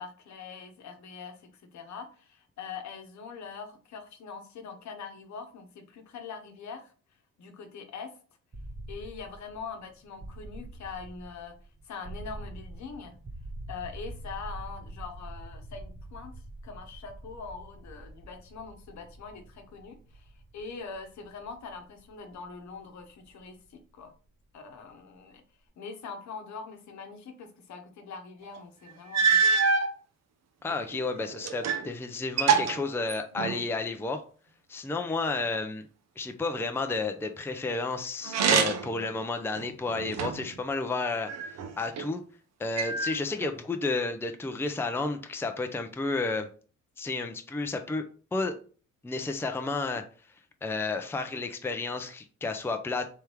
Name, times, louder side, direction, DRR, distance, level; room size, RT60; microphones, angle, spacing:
voice 1, 0.0-6.9 7.4-8.1 8.9-11.6 11.8-13.2 13.7-16.4 16.6-24.1 24.5-25.4 25.8-29.5, left 5 dB, 65° left, 5 dB, 1.0 m, -43 dB
sound 1, 8.5-24.4, right 1 dB, 25° right, 0.9 m, -45 dB
sound 2, 28.6-28.7 29.1-29.9 30.7-31.9 32.2-33.7 38.2-39.0 39.5-40.5 41.3-42.1 42.8-43.5, right 5 dB, 60° right, 0.7 m, -26 dB
voice 2, 30.6-34.2 34.7-35.8 36.2-42.2 42.6-46.5 47.0-48.0 48.3-48.5 49.0-50.0 50.6-53.1, left 3 dB, 10° left, 6 dB, 0.5 m, -31 dB
3.5 x 3.3 x 4.4 m, 0.40 s
cardioid pair, 90°, 30 cm